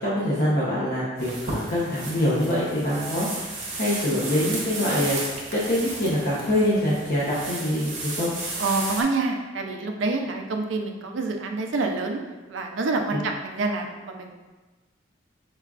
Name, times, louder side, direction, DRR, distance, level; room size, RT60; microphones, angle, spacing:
voice 1, 0.0-5.2 5.5-8.3 13.1-13.2, left 1 dB, 60° left, -9 dB, 0.7 m, -25 dB
sound 1, 1.2-9.0, right 2 dB, 40° right, 0.7 m, -34 dB
voice 2, 8.6-12.2 12.5-14.3, right 3 dB, 80° right, 3 dB, 0.4 m, -27 dB
5.5 x 2.3 x 2.4 m, 1.2 s
head